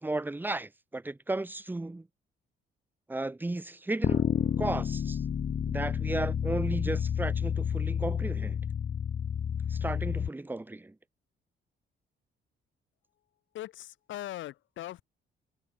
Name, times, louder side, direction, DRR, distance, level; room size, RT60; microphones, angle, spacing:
voice 1, 0.0-2.1 3.1-4.3 4.6-5.2 5.7-8.6 9.7-10.9, right 2 dB, 10° right, 0.8 m, -34 dB
sound 1, 4.0-10.3, left 8 dB, 45° left, 1.0 m, -30 dB
voice 2, 13.5-15.0, left 14 dB, 75° left, 0.7 m, -40 dB
cardioid pair, 90°, 20 cm